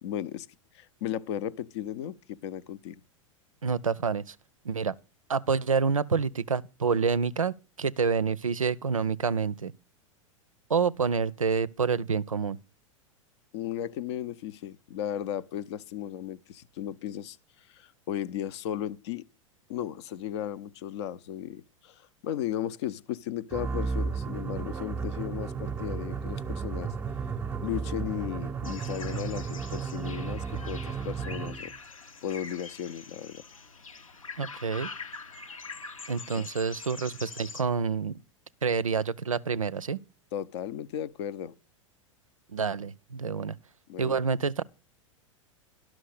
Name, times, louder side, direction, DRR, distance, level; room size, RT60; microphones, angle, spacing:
voice 1, 0.0-0.5 0.7-3.0 13.5-17.4 17.7-19.2 19.7-26.9 27.6-31.7 32.2-33.4 36.3-36.4 40.3-41.5 43.9-44.2, left 11 dB, 55° left, 0.6 m, -35 dB
voice 2, 3.6-4.4 4.6-4.9 5.3-9.7 10.7-12.6 34.4-34.9 36.1-38.1 38.6-40.0 42.5-43.5 44.0-44.6, right 5 dB, 90° right, 0.4 m, -28 dB
sound 1, 23.5-31.7, right 5 dB, 15° right, 0.7 m, -33 dB
sound 2, 28.6-37.6, left 4 dB, 85° left, 1.1 m, -44 dB
11.5 x 6.1 x 6.4 m
figure-of-eight pair, 95°, 17 cm